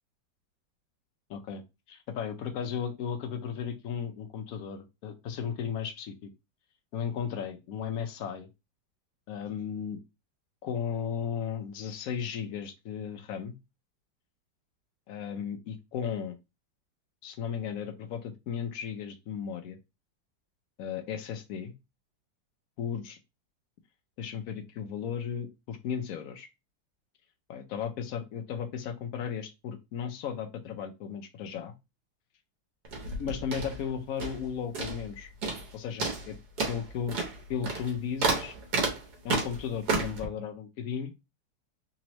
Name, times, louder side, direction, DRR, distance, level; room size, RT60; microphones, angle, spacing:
voice 1, 1.3-6.3 6.9-8.5 9.3-10.0 10.6-13.5 15.1-16.4 17.2-19.8 20.8-21.7 22.8-23.2 24.2-26.5 27.5-31.7 33.2-35.3 35.7-36.4 36.7-37.2 37.5-38.5 39.2-41.1, left 7 dB, 70° left, 7 dB, 0.8 m, -35 dB
sound 1, 32.8-34.5 34.7-35.1 35.4-35.7 36.0-40.3, right 3 dB, 60° right, 1.4 m, -31 dB
3.5 x 3.1 x 2.9 m, 0.24 s
omnidirectional pair, 2.0 m